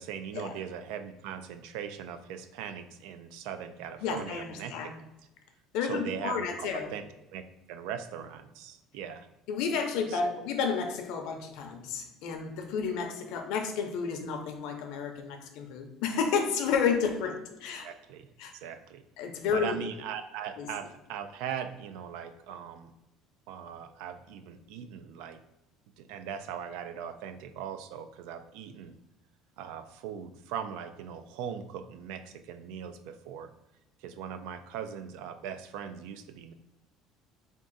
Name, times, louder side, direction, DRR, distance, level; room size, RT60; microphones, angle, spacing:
voice 1, 0.0-5.0 5.8-7.0 7.3-7.4 7.7-9.3 10.1-10.2 17.8-18.3 18.5-19.0 19.5-22.9 23.5-25.4 26.0-29.0 29.6-33.5 34.0-36.5, right 8 dB, 80° right, 10 dB, 0.3 m, -40 dB
voice 2, 4.0-5.0 5.7-6.9 9.5-17.9 18.4-18.5 19.2-19.8 20.6-20.7, left 6 dB, 70° left, 5 dB, 0.6 m, -31 dB
3.6 x 2.4 x 3.8 m, 0.95 s
cardioid pair, 160°, 0 cm